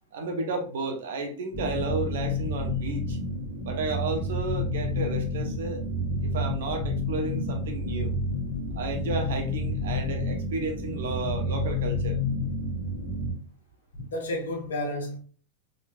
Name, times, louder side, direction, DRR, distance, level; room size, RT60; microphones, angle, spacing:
voice 1, 0.1-3.2 3.6-5.8 6.2-8.1 8.7-12.2, right 3 dB, 55° right, 1.0 m, -32 dB
sound 1, 1.5-13.3, left 2 dB, 10° left, 1.4 m, -30 dB
voice 2, 13.9-15.2, left 1 dB, 65° left, 1.1 m, -31 dB
4.0 x 3.6 x 2.3 m
figure-of-eight pair, 90°, 0 cm